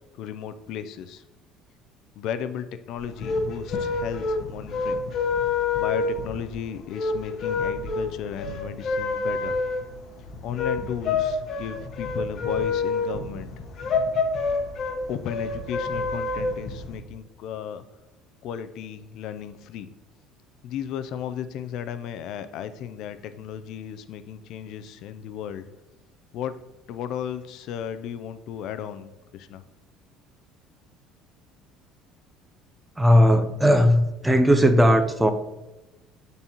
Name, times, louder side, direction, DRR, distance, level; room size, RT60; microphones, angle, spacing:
voice 1, 0.1-1.2 2.2-5.0 5.7-9.6 10.4-13.5 15.1-17.8 18.4-19.9 20.6-25.6 26.3-26.6 26.9-29.6, left 9 dB, 60° left, 11 dB, 0.4 m, -35 dB
sound 1, 3.0-17.0, left 4 dB, 45° left, 1.0 m, -28 dB
voice 2, 33.0-35.3, equal, 10° right, 8 dB, 0.5 m, -18 dB
10.5 x 4.0 x 2.9 m, 1.1 s
cardioid pair, 125°, 0 cm